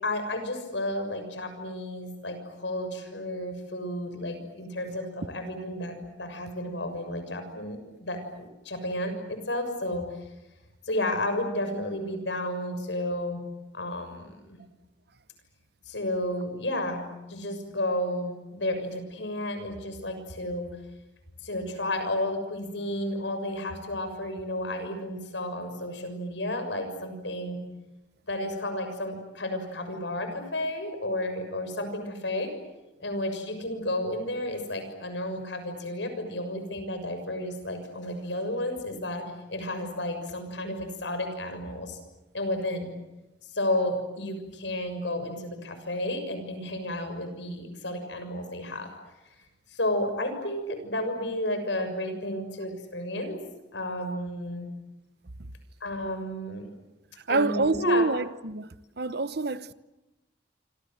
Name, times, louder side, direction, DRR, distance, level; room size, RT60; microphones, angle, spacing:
voice 1, 0.0-10.0 10.9-13.4 13.7-14.6 15.9-20.7 21.4-27.6 28.3-32.5 33.0-42.0 42.3-42.9 43.5-48.9 49.7-53.4 53.7-54.7 55.8-56.7 57.3-58.1, left 1 dB, 80° left, 6.6 m, -32 dB
voice 2, 57.3-58.7 59.0-59.7, right 3 dB, 60° right, 0.9 m, -26 dB
27.0 x 26.5 x 7.9 m
head